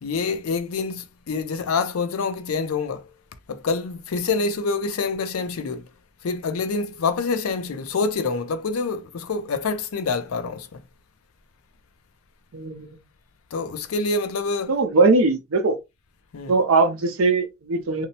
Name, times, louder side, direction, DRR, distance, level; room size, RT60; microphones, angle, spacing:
voice 1, 0.0-3.1 3.5-5.9 6.2-10.8 13.5-14.8 16.3-16.5, left 4 dB, 90° left, 0.4 m, -26 dB
voice 2, 12.5-13.0 14.7-15.8 16.5-18.1, right 3 dB, 85° right, 0.6 m, -20 dB
2.7 x 2.0 x 2.7 m
head